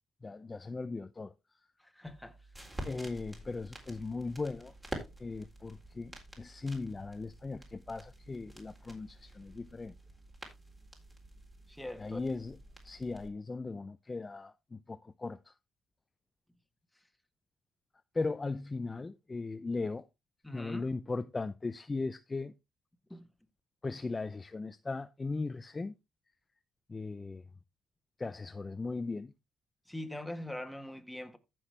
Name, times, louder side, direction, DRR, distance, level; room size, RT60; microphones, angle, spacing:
voice 1, 0.2-1.3 2.8-4.7 5.2-9.9 12.0-12.6 12.8-15.5 18.1-20.0 20.5-22.5 23.8-25.9 26.9-27.4 28.2-29.3, left 3 dB, 25° left, 0.5 m, -38 dB
voice 2, 1.8-2.4 11.7-12.3 20.4-20.9 23.1-23.3 29.9-31.4, left 1 dB, 5° left, 1.6 m, -42 dB
sound 1, 2.0-13.3, right 1 dB, 20° right, 3.8 m, -48 dB
14.5 x 6.2 x 3.3 m
cardioid pair, 90°, 0 cm